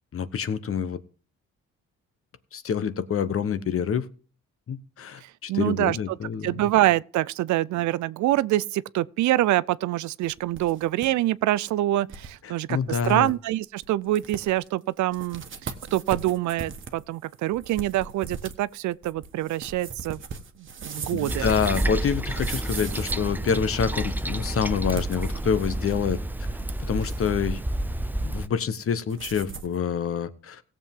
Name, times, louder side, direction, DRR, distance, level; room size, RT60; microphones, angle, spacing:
voice 1, 0.1-1.0 2.5-4.1 4.7-6.5 12.4-13.3 21.1-26.2 26.9-27.6 28.2-30.6, left 7 dB, 50° left, 1.0 m, -27 dB
voice 2, 5.5-6.0 6.4-15.4 15.9-20.2 20.8-21.5, right 15 dB, 70° right, 0.5 m, -25 dB
sound 1, 10.2-11.1 11.4-11.5 12.1-12.3 12.7-12.8 13.0-13.3 13.8-13.9 14.2-14.7 15.1-23.9 24.8-26.1 26.4-27.4 29.1-29.8, right 5 dB, 40° right, 1.3 m, -39 dB
Toilet flush, 21.3-28.5, right 1 dB, 5° right, 0.5 m, -29 dB
17.0 x 7.5 x 3.6 m
cardioid pair, 90°, 30 cm